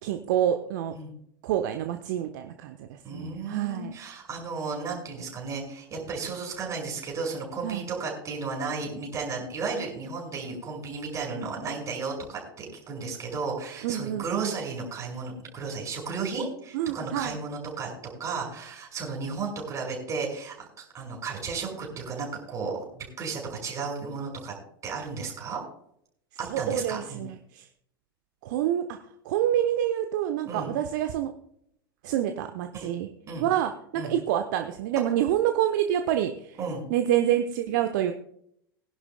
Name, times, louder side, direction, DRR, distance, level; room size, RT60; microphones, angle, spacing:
voice 1, 0.0-0.9 1.4-3.9 7.6-7.8 13.8-14.6 16.7-17.4 26.5-27.7 28.4-29.0 29.2-31.3 32.0-33.1 33.4-36.6 36.9-38.1, right 11 dB, 50° right, 7 dB, 0.9 m, -27 dB
voice 2, 3.0-17.9 18.2-24.5 24.8-25.6 26.6-27.2 30.4-30.7 32.7-32.9 33.3-33.5 33.9-34.1 36.6-36.8, right 4 dB, 25° right, 0 dB, 5.5 m, -34 dB
21.5 x 11.0 x 2.2 m, 0.72 s
figure-of-eight pair, 85°, 12 cm